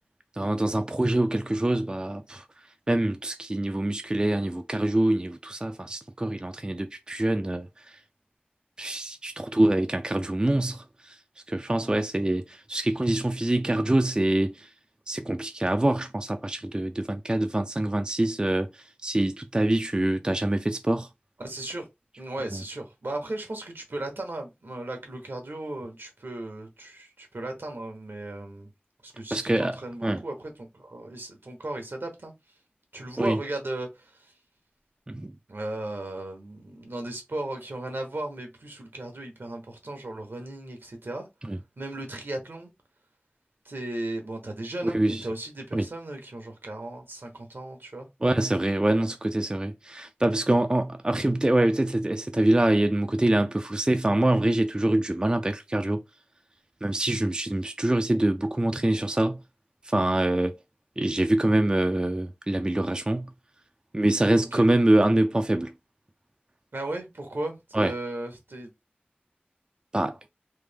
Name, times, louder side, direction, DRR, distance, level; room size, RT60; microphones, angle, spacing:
voice 1, 0.4-2.4 2.9-8.0 8.8-11.2 11.5-14.7 15.1-21.1 22.5-22.6 29.3-30.2 33.2-33.4 35.1-35.3 41.4-41.6 44.8-45.3 45.7-45.9 48.2-56.0 56.8-59.4 59.8-60.5 61.0-63.3 63.9-65.7 67.7-67.9 69.9-70.2, right 1 dB, 25° right, 0.4 m, -25 dB
voice 2, 21.4-21.8 22.2-28.7 29.0-32.3 32.9-34.3 35.5-41.3 41.8-42.7 43.6-48.1 64.5-64.7 66.7-68.7, right 2 dB, 75° right, 1.1 m, -36 dB
3.3 x 2.1 x 3.4 m
wide cardioid pair, 45°, 4 cm